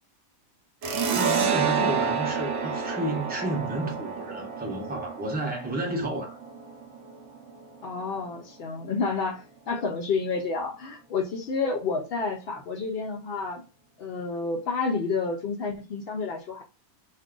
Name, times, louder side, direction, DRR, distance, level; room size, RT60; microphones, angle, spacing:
sound 1, 0.8-8.0, right 6 dB, 65° right, 0.8 m, -29 dB
voice 1, 1.1-6.4, right 1 dB, 10° right, 0.5 m, -31 dB
voice 2, 7.8-13.6 14.0-16.6, left 4 dB, 75° left, 0.5 m, -30 dB
2.6 x 2.4 x 3.6 m
omnidirectional pair, 1.6 m